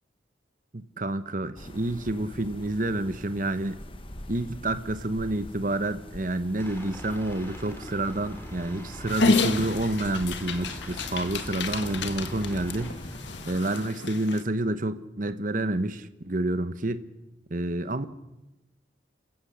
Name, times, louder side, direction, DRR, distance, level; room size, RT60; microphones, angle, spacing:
voice 1, 0.7-3.8 4.3-13.0 13.4-17.0 17.5-18.1, right 1 dB, 45° right, 11 dB, 1.1 m, -29 dB
sound 1, 1.5-13.6, left 1 dB, 30° left, 1.4 m, -44 dB
Aircraft, 6.6-12.9, equal, 15° left, 3.8 m, -42 dB
Dog, 9.1-14.4, left 4 dB, 75° left, 1.7 m, -30 dB
28.0 x 15.0 x 8.1 m, 1.0 s
head